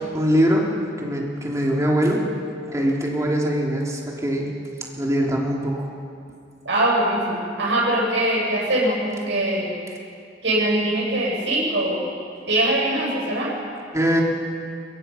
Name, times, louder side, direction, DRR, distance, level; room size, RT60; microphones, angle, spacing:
voice 1, 0.1-0.7 1.0-2.2 2.7-4.5 5.0-5.9 13.9-14.2, equal, 15° right, -2 dB, 3.1 m, -22 dB
voice 2, 6.6-9.7 10.4-12.0 12.5-13.5, right 1 dB, 75° right, -4 dB, 8.0 m, -22 dB
24.0 x 21.5 x 5.7 m, 2.4 s
head